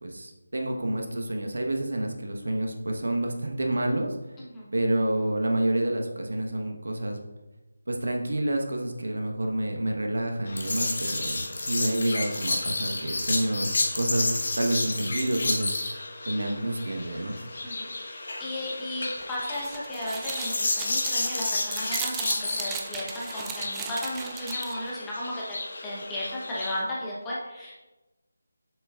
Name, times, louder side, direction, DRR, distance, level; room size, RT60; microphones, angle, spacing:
voice 1, 0.0-4.2 4.7-7.2 7.9-13.7 13.9-14.3 14.6-15.8 16.2-17.4, right 1 dB, 80° right, 2 dB, 1.2 m, -28 dB
voice 2, 4.4-4.7 17.6-27.7, left 1 dB, 5° left, -7 dB, 1.0 m, -35 dB
sound 1, 10.5-26.8, left 2 dB, 50° left, 1.2 m, -31 dB
sound 2, 19.2-24.9, right 6 dB, 10° right, 0.3 m, -37 dB
7.6 x 6.8 x 2.4 m, 1.1 s
figure-of-eight pair, 175°, 0 cm